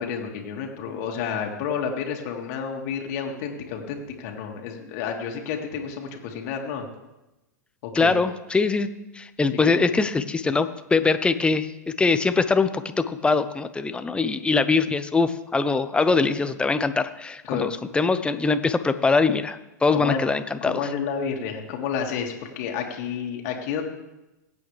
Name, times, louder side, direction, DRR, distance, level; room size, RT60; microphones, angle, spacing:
voice 1, 0.0-6.9 7.8-8.2 9.6-9.8 17.4-17.7 19.9-20.2 20.6-23.8, left 7 dB, 55° left, 2 dB, 2.1 m, -30 dB
voice 2, 7.9-8.9 9.1-11.7 12.0-20.8, left 4 dB, 10° left, 11 dB, 0.7 m, -22 dB
21.5 x 8.5 x 3.3 m, 0.98 s
hypercardioid pair, 105°, 10 cm